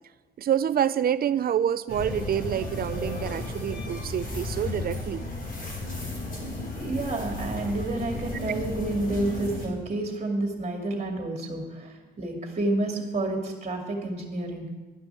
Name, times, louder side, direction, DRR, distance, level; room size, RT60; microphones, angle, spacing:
voice 1, 0.4-5.3, right 9 dB, 50° right, 16 dB, 0.5 m, -27 dB
sound 1, 1.9-9.7, left 2 dB, 45° left, 3.3 m, -34 dB
voice 2, 6.8-14.6, right 2 dB, 35° right, 2 dB, 2.4 m, -30 dB
11.0 x 6.0 x 9.0 m, 1.2 s
cardioid pair, 90°, 20 cm